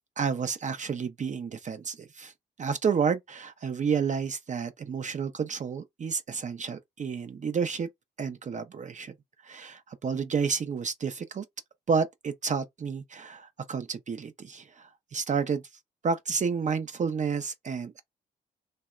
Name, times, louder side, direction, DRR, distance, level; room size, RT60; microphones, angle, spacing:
voice 1, 0.2-2.3 2.6-7.9 8.2-9.1 9.4-11.4 11.9-15.6 16.0-18.0, right 6 dB, 40° right, 0.5 m, -30 dB
2.8 x 2.1 x 2.3 m
supercardioid pair, 60°, 19 cm